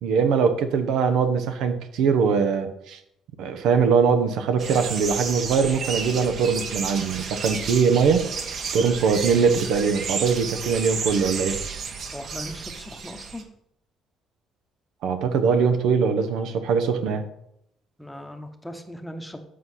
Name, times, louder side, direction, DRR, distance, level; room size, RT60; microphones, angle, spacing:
voice 1, 0.0-3.0 3.4-8.3 8.7-11.6 15.0-17.2, right 6 dB, 75° right, 8 dB, 0.8 m, -22 dB
sound 1, 4.6-13.4, right 5 dB, 55° right, 1.1 m, -32 dB
voice 2, 12.1-13.4 18.0-19.4, left 1 dB, 5° left, 6 dB, 1.0 m, -38 dB
7.6 x 4.1 x 6.1 m, 0.76 s
cardioid pair, 90°, 0 cm